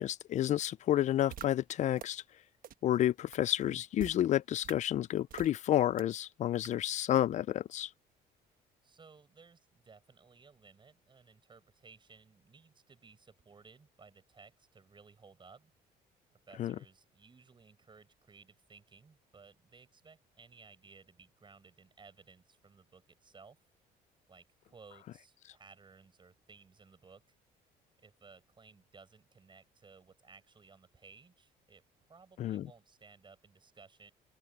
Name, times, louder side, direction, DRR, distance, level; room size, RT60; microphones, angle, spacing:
voice 1, 0.0-2.2 2.8-7.9 16.6-16.8 32.4-32.7, left 12 dB, 45° left, 0.4 m, -30 dB
sound 1, 1.3-1.5 2.0-2.1 2.6-2.7 3.3-3.4 4.0-4.2 4.6-4.7 5.3-5.5 6.0-6.1 6.6-6.7, right 11 dB, 55° right, 1.2 m, -44 dB
voice 2, 8.8-15.7 16.3-23.6 24.3-27.3 28.0-31.8 32.1-34.1, right 5 dB, 30° right, 7.8 m, -59 dB
open air
cardioid pair, 110°, 17 cm